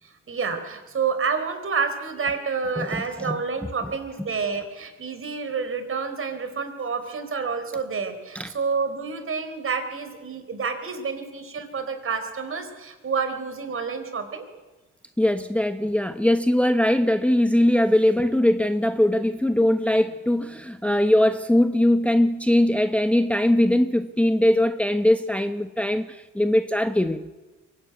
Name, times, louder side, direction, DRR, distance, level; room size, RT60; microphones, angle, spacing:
voice 1, 0.0-14.4, right 5 dB, 45° right, 4.4 m, -29 dB
voice 2, 2.8-3.4 8.3-8.5 15.2-27.3, left 1 dB, 5° left, 0.9 m, -21 dB
23.0 x 17.5 x 9.5 m
cardioid pair, 90°, 30 cm